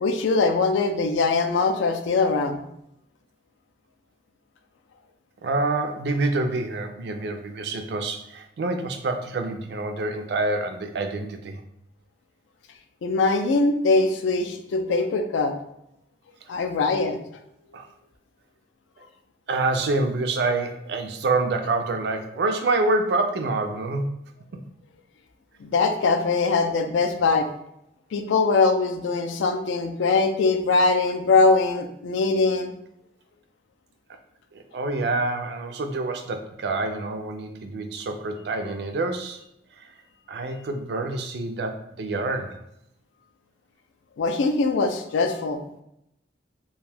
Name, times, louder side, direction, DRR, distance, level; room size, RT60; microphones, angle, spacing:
voice 1, 0.0-2.6 13.0-15.5 16.5-17.2 25.6-27.5 28.1-32.7 44.2-45.6, left 3 dB, 85° left, 6 dB, 0.3 m, -22 dB
voice 2, 5.4-11.6 17.7-17.9 19.0-19.1 19.5-24.1 34.5-39.4 39.8-39.9 40.3-42.6, right 2 dB, 60° right, 6 dB, 0.3 m, -27 dB
2.5 x 2.2 x 3.3 m, 0.80 s
head